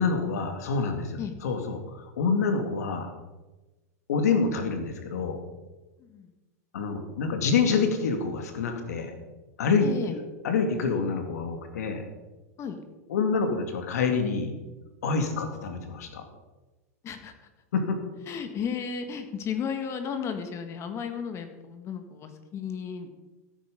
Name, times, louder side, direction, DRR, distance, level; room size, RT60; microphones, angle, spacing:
voice 1, 0.0-3.1 4.1-5.4 6.7-9.1 9.6-12.0 13.1-14.5 15.0-16.2 17.7-18.0, left 5 dB, 80° left, 5 dB, 2.6 m, -27 dB
voice 2, 9.8-10.1 12.6-12.8 17.0-17.3 18.3-23.1, left 7 dB, 35° left, 8 dB, 2.0 m, -34 dB
16.0 x 9.1 x 5.4 m, 1.1 s
hypercardioid pair, 120°, 8 cm